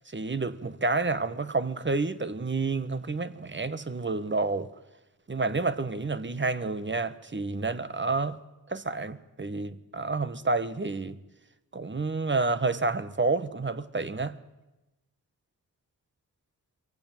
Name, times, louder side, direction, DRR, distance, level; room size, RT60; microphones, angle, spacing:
voice 1, 0.1-4.7 5.3-8.4 8.7-11.2 11.7-14.4, right 3 dB, 30° right, 1.4 m, -29 dB
23.0 x 17.0 x 9.1 m
cardioid pair, 55°, 36 cm